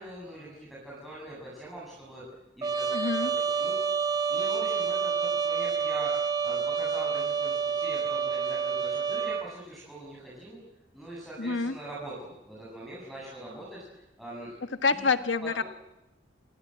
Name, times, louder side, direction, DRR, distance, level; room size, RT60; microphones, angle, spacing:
voice 1, 0.0-2.2 2.6-3.1 3.5-3.8 4.3-6.1 6.4-10.6 10.9-13.8 14.2-14.5 14.9-15.1 15.4-15.6, right 1 dB, ahead, -6 dB, 7.7 m, -43 dB
Trumpet, 2.6-9.5, right 6 dB, 25° right, 1.9 m, -28 dB
voice 2, 2.9-3.3 11.4-11.8 14.8-15.6, left 4 dB, 80° left, 9 dB, 1.5 m, -27 dB
30.0 x 19.5 x 8.9 m, 0.94 s
head